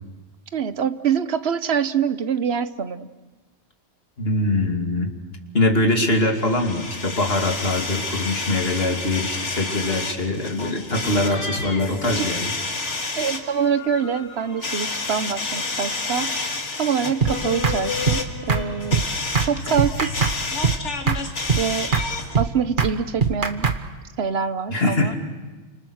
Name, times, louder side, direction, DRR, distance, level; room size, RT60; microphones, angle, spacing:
voice 1, 0.5-3.1 12.0-12.3 13.2-16.3 16.8-19.0 19.4-20.3 21.6-21.9 22.4-23.7 24.2-25.1, right 7 dB, 65° right, 12 dB, 1.2 m, -25 dB
voice 2, 4.2-5.1 5.5-12.5 24.7-25.1, left 2 dB, 55° left, 3 dB, 2.9 m, -22 dB
sound 1, 6.4-22.4, left 3 dB, 85° left, 2.4 m, -30 dB
sound 2, 17.2-17.3 17.6-17.8 18.1-18.2 18.5-18.6 18.9-19.1 19.3-19.5 19.8-20.4 20.6-20.8 21.1-21.2 21.5-21.6 21.9-22.1 22.3-22.5 22.8-22.9 23.2-23.8, right 5 dB, 45° right, 1.4 m, -21 dB
30.0 x 27.0 x 6.5 m, 1.3 s
omnidirectional pair, 1.2 m